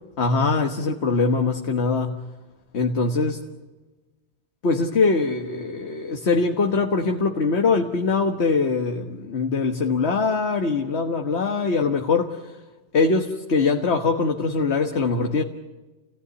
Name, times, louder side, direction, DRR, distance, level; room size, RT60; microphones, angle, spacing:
voice 1, 0.2-2.2 2.7-3.4 4.6-12.6 12.9-15.4, left 4 dB, 70° left, 4 dB, 1.6 m, -22 dB
29.5 x 17.0 x 9.6 m, 1.2 s
omnidirectional pair, 1.1 m